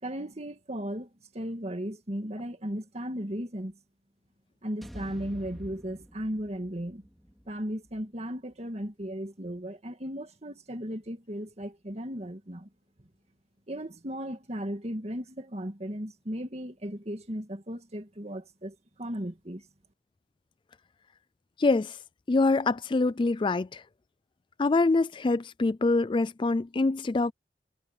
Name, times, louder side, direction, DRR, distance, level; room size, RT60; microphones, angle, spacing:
voice 1, 0.0-1.1 1.3-3.8 4.6-7.1 7.5-12.7 13.7-19.6, equal, 35° right, 2.1 m, -36 dB
sound 1, 4.8-9.0, equal, ahead, 4.6 m, -48 dB
voice 2, 21.6-22.0 22.3-23.8 24.6-27.3, left 3 dB, 30° left, 0.4 m, -25 dB
head